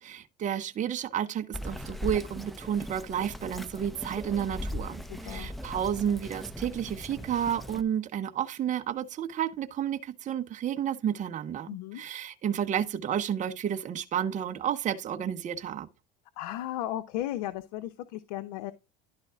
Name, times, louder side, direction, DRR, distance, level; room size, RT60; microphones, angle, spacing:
voice 1, 0.0-15.9, right 9 dB, 35° right, 0.9 m, -31 dB
Bird vocalization bird call bird song, 1.5-7.8, left 1 dB, ahead, 0.9 m, -39 dB
voice 2, 5.1-5.5 11.7-12.0 16.4-18.7, left 13 dB, 80° left, 0.8 m, -35 dB
11.5 x 4.1 x 3.6 m
supercardioid pair, 95°, 21 cm